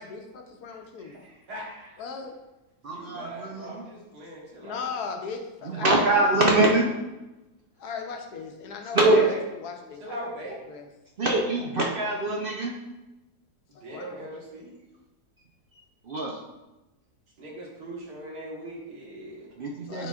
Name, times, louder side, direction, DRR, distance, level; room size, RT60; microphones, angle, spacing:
voice 1, 0.0-1.2 2.0-2.3 4.6-6.2 7.8-10.2 10.5-10.9 13.7-14.3 19.9-20.1, left 5 dB, 75° left, 4 dB, 1.3 m, -38 dB
voice 2, 0.7-2.1 2.9-5.0 5.7-6.1 6.4-6.6 8.9-9.4 10.0-10.6 13.7-14.7 17.4-19.5, right 1 dB, 80° right, -4 dB, 2.1 m, -40 dB
voice 3, 2.8-3.8 5.6-6.9 8.9-9.2 11.2-12.7 16.1-16.4 19.6-20.1, right 2 dB, 65° right, -1 dB, 0.5 m, -23 dB
9.6 x 4.1 x 2.4 m, 1.0 s
omnidirectional pair, 1.7 m